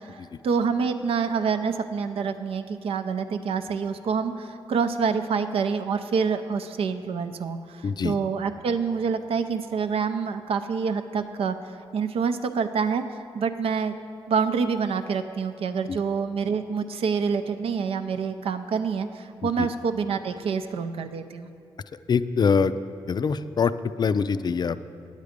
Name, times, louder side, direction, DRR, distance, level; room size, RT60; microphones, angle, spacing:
voice 1, 0.4-11.6 11.9-13.0 13.3-13.9 14.3-21.5, right 5 dB, 70° right, 9 dB, 0.5 m, -27 dB
voice 2, 7.8-8.2 15.9-16.0 19.4-19.7 22.1-22.7 23.1-24.9, left 5 dB, 45° left, 14 dB, 0.4 m, -24 dB
9.2 x 8.2 x 5.1 m, 2.4 s
supercardioid pair, 50°, 10 cm